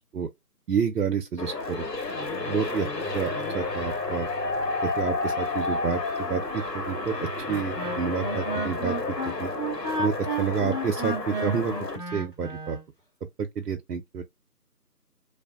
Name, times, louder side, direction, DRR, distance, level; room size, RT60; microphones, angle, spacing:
voice 1, 0.7-1.9 2.5-2.9 3.1-4.3 4.8-8.9 9.3-9.5 10.0-12.8 13.4-14.2, right 6 dB, 80° right, 0.6 m, -29 dB
sound 1, 1.4-12.0, left 3 dB, 85° left, 1.1 m, -31 dB
Wind instrument woodwind instrument, 7.5-12.8, right 2 dB, 30° left, 0.8 m, -32 dB
2.6 x 2.1 x 2.3 m
figure-of-eight pair, 170°, 48 cm